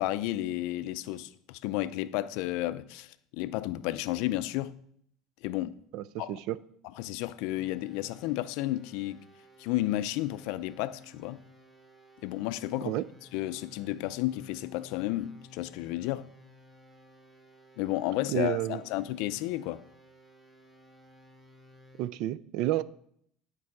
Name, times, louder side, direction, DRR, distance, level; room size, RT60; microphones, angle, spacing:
voice 1, 0.0-4.7 5.4-5.8 6.2-6.4 7.0-9.2 9.6-11.4 12.2-12.9 13.3-16.3 17.8-19.8, left 16 dB, 70° left, 0.4 m, -32 dB
voice 2, 5.9-6.6 12.8-13.1 18.3-18.8 22.0-22.8, right 14 dB, 60° right, 0.3 m, -30 dB
sound 1, 7.5-22.1, left 1 dB, 5° right, 0.8 m, -56 dB
11.0 x 4.6 x 4.7 m
cardioid pair, 160°, 0 cm